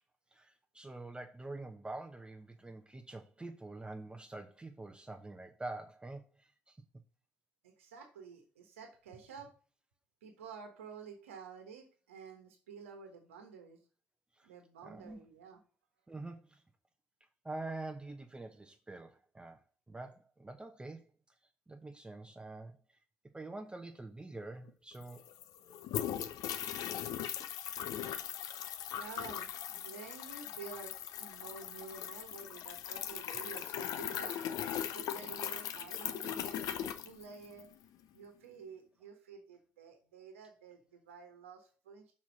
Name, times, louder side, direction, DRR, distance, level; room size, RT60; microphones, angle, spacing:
voice 1, 0.3-6.8 14.3-14.5 14.8-15.2 16.1-16.6 17.4-21.1 21.7-23.0 23.3-25.2, right 2 dB, 15° right, 0.9 m, -46 dB
voice 2, 7.6-9.5 10.2-13.8 14.4-15.6 29.0-37.7 38.1-42.1, right 5 dB, 85° right, 1.2 m, -51 dB
sound 1, 24.7-24.8 25.0-37.7, left 10 dB, 60° left, 0.7 m, -39 dB
5.9 x 4.4 x 6.3 m
hypercardioid pair, 50°, 7 cm